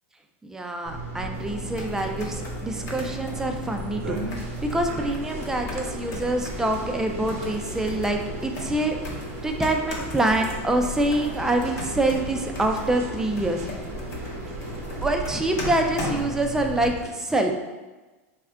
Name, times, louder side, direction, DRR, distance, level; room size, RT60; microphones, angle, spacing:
voice 1, 0.4-9.0 9.4-13.7 15.0-17.5, right 1 dB, 5° right, 3 dB, 0.3 m, -26 dB
sound 1, 0.9-16.9, right 3 dB, 90° right, 0.7 m, -36 dB
sound 2, 1.3-17.1, left 2 dB, 45° left, 0.8 m, -37 dB
3.5 x 2.3 x 3.3 m, 1.2 s
supercardioid pair, 130°, 7 cm